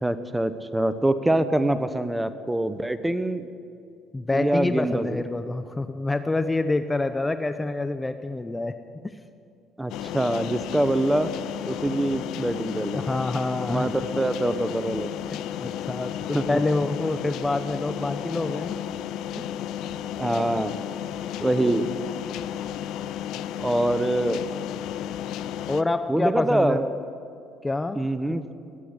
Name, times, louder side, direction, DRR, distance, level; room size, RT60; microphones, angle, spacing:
voice 1, 0.0-3.5 4.3-5.2 9.8-11.4 11.7-13.0 13.7-15.1 16.3-16.4 20.2-20.7 21.4-21.9 23.6-24.4 26.1-27.0 27.9-28.5, right 1 dB, 10° right, 12 dB, 1.0 m, -24 dB
voice 2, 4.1-8.8 9.0-9.2 12.9-13.9 15.6-18.8 19.4-19.5 25.7-26.8 27.6-28.0, left 2 dB, 20° left, 10 dB, 0.7 m, -27 dB
sound 1, 9.9-25.8, left 10 dB, 70° left, 0.5 m, -33 dB
21.0 x 8.5 x 8.1 m, 2.5 s
supercardioid pair, 65°, 0 cm